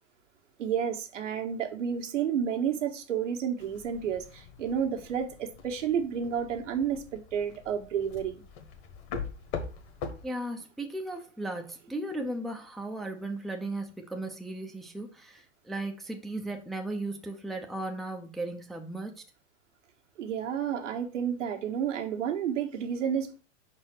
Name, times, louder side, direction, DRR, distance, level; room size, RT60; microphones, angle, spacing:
voice 1, 0.6-8.4 20.2-23.4, right 8 dB, 85° right, 1.6 m, -31 dB
sound 1, 3.6-10.3, left 5 dB, 35° left, 1.3 m, -42 dB
voice 2, 10.2-19.2, right 2 dB, ahead, 0.5 m, -36 dB
5.0 x 4.5 x 6.0 m
hypercardioid pair, 135°, 36 cm